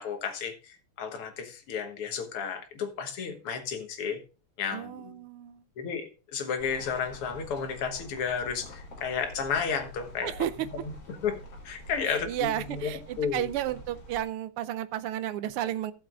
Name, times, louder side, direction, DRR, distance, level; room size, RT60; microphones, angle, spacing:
voice 1, 0.0-4.2 4.6-5.2 5.8-10.3 10.8-11.4 11.6-13.4, left 6 dB, 85° left, 2.3 m, -32 dB
voice 2, 4.7-5.6 10.2-10.7 12.1-15.9, right 12 dB, 90° right, 1.6 m, -32 dB
sound 1, 6.6-14.2, left 1 dB, 50° left, 2.7 m, -47 dB
15.5 x 7.3 x 2.4 m
omnidirectional pair, 2.4 m